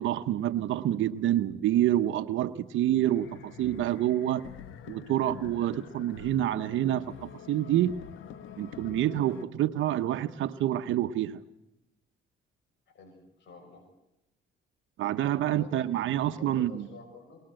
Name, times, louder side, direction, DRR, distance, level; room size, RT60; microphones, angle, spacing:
voice 1, 0.0-4.4 4.9-8.0 8.6-11.4 15.0-16.9, right 12 dB, 80° right, 8 dB, 0.9 m, -27 dB
sound 1, 3.1-9.5, left 9 dB, 85° left, 1.2 m, -46 dB
voice 2, 12.9-13.8 15.5-15.9 16.3-17.4, left 5 dB, 65° left, 2 dB, 5.8 m, -50 dB
23.0 x 19.5 x 7.7 m, 0.92 s
cardioid pair, 90°, 20 cm